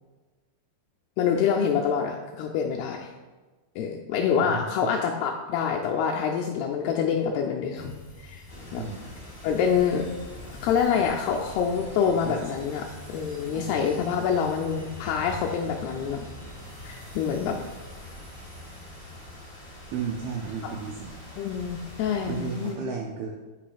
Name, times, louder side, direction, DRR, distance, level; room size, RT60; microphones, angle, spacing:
voice 1, 1.2-3.1 3.8-7.9 8.2-8.5 8.7-8.8 9.4-10.1 10.6-16.3 16.8-17.6 20.6-20.7 21.4-22.8, left 7 dB, 85° left, 0 dB, 2.3 m, -26 dB
voice 2, 4.4-4.9 8.7-9.0 12.3-12.4 13.5-13.9 17.4-17.5 19.9-21.2 22.3-23.3, right 6 dB, 85° right, 0 dB, 2.2 m, -34 dB
sound 1, 7.7-22.4, left 1 dB, 50° right, 0.4 m, -45 dB
sound 2, 8.5-22.7, left 1 dB, 55° left, 0.3 m, -47 dB
8.6 x 3.0 x 5.0 m, 1.3 s
omnidirectional pair, 5.0 m